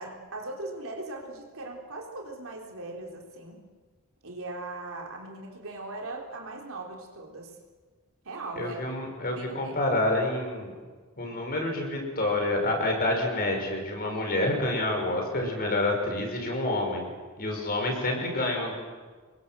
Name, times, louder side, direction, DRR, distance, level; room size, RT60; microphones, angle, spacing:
voice 1, 0.0-3.6 4.2-7.6 8.2-8.8 9.3-9.8, right 2 dB, 65° right, 1 dB, 3.9 m, -39 dB
voice 2, 8.6-10.7 11.2-17.1 17.4-18.8, left 1 dB, 45° left, 2 dB, 5.7 m, -28 dB
26.0 x 22.0 x 7.7 m, 1.4 s
head